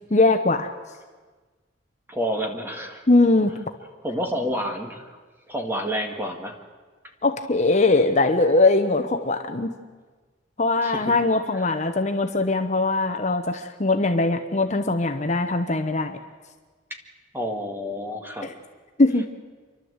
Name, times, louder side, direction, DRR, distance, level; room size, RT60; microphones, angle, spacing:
voice 1, 0.1-0.7 3.1-3.6 7.2-9.7 10.6-16.2 18.4-18.5 19.0-19.2, left 2 dB, 35° left, 6 dB, 0.9 m, -21 dB
voice 2, 2.1-3.0 4.0-5.2 5.5-6.6 10.8-11.2 11.6-11.8 17.3-18.5, equal, 10° right, 3 dB, 1.9 m, -29 dB
29.0 x 12.0 x 8.1 m, 1.4 s
head